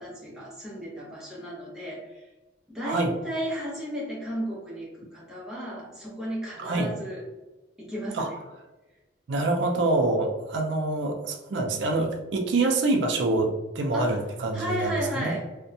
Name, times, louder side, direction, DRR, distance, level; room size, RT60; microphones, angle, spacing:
voice 1, 0.0-2.2 2.7-7.2 7.8-8.3 13.9-14.2 14.5-15.4, equal, 5° right, -6 dB, 0.7 m, -33 dB
voice 2, 6.6-6.9 8.1-8.3 9.3-15.3, right 2 dB, 75° right, 3 dB, 0.4 m, -26 dB
2.6 x 2.1 x 2.6 m, 1.1 s
head